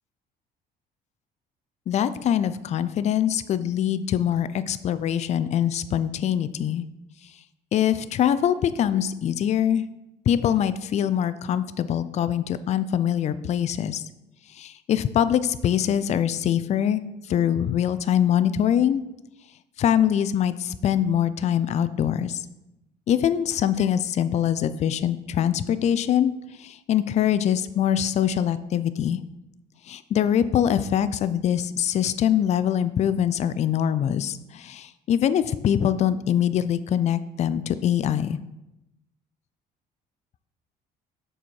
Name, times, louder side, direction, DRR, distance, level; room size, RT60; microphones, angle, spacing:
voice 1, 1.9-6.8 7.7-9.8 10.3-14.0 14.5-19.0 19.8-22.4 23.1-26.3 26.6-29.2 29.9-38.4, left 9 dB, 40° left, 13 dB, 0.4 m, -23 dB
6.8 x 4.3 x 4.7 m, 0.92 s
cardioid pair, 110°, 17 cm